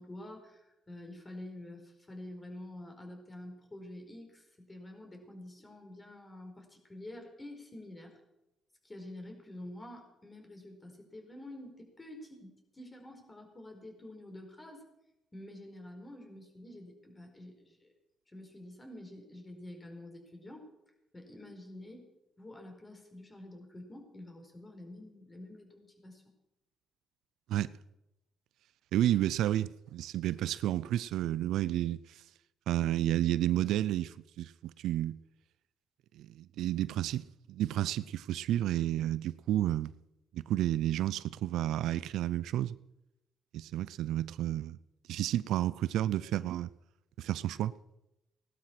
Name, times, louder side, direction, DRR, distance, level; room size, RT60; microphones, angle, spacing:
voice 1, 0.0-8.2 8.8-14.9 15.3-17.9 18.3-20.7 21.1-22.1 22.4-26.2, left 1 dB, 20° left, 4.6 m, -48 dB
voice 2, 28.9-32.2 32.7-35.2 36.1-39.9 40.3-42.8 43.5-44.8 45.1-46.7 47.2-47.7, right 13 dB, 85° right, 0.5 m, -31 dB
17.5 x 12.0 x 6.0 m
cardioid pair, 90°, 0 cm